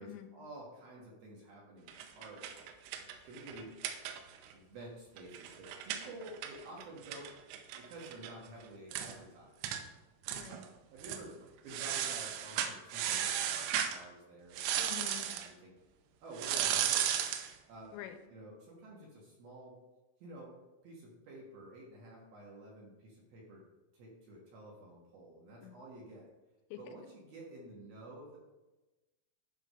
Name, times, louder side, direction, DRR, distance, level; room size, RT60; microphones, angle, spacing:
voice 1, 0.0-3.8 4.5-7.3 7.8-9.6 10.9-14.8 15.1-15.7 16.2-17.3 17.7-18.0 18.3-19.8 20.2-23.7 23.9-26.3 26.8-28.4, right 1 dB, 65° right, -3 dB, 2.6 m, -51 dB
sound 1, 1.9-4.5 4.8-4.9 5.2-8.3 8.6-8.7 8.9-9.2 9.6-9.8 10.3-10.7 11.0-11.2 11.7-14.0 14.5-15.5 16.4-17.5, right 10 dB, 85° right, 3.2 m, -35 dB
voice 2, 10.3-10.7 14.8-15.3 17.9-18.2 25.6-25.8 26.7-26.8, left 13 dB, 85° left, 7 dB, 3.1 m, -46 dB
11.0 x 3.7 x 5.5 m, 1.1 s
omnidirectional pair, 6.0 m